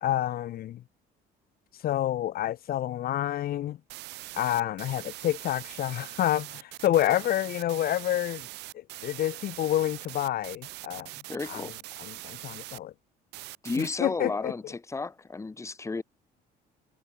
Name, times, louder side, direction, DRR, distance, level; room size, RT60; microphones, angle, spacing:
voice 1, 0.0-0.8 1.8-3.8 4.3-8.5 8.7-11.1 11.5-11.7 12.0-12.9 13.8-14.5, left 12 dB, 65° left, 1.5 m, -28 dB
sound 1, 3.9-12.8 13.3-13.9, right 20 dB, 90° right, 5.2 m, -42 dB
voice 2, 11.3-11.7 13.6-16.0, left 3 dB, 15° left, 1.6 m, -33 dB
cardioid pair, 110°, 17 cm